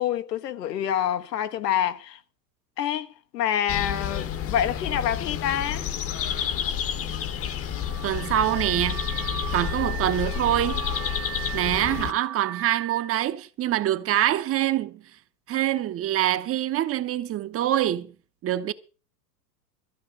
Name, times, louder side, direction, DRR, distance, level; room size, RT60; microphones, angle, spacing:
voice 1, 0.0-2.2 2.8-5.9, left 10 dB, 70° left, 1.4 m, -27 dB
sound 1, 3.7-12.1, left 9 dB, 25° left, 1.1 m, -30 dB
Car / Alarm, 7.7-13.1, right 12 dB, 85° right, 1.7 m, -37 dB
voice 2, 8.0-9.0 9.5-10.8 11.5-15.0 15.5-18.1 18.4-18.7, right 12 dB, 30° right, 0.9 m, -25 dB
14.0 x 6.1 x 9.8 m
hypercardioid pair, 105°, 50 cm